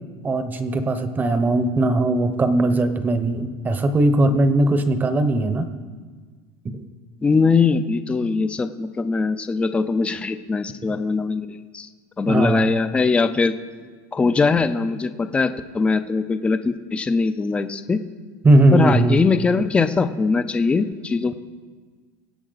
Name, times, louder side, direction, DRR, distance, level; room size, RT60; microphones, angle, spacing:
voice 1, 0.2-5.7 6.6-6.8 12.3-12.7 18.4-19.2, right 2 dB, 15° right, 10 dB, 0.9 m, -19 dB
voice 2, 7.2-11.9 12.2-13.5 14.1-18.0 18.7-21.3, left 4 dB, 10° left, 10 dB, 0.5 m, -21 dB
23.5 x 8.4 x 4.0 m, 1.5 s
supercardioid pair, 150°, 11 cm